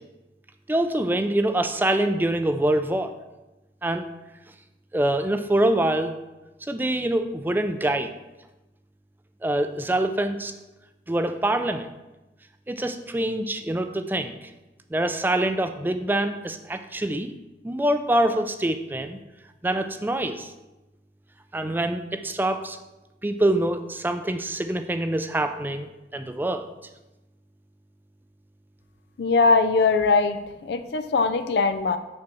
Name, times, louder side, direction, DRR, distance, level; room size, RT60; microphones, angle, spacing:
voice 1, 0.7-3.1 3.8-4.0 4.9-6.1 6.7-8.1 9.4-10.5 11.1-11.9 12.7-14.3 14.9-17.3 17.6-19.2 19.6-20.5 21.5-22.8 23.2-25.9 26.1-26.7, right 1 dB, 10° right, 8 dB, 0.4 m, -25 dB
voice 2, 29.2-32.0, left 4 dB, 65° left, 9 dB, 0.4 m, -21 dB
6.1 x 4.4 x 6.0 m, 1.0 s
head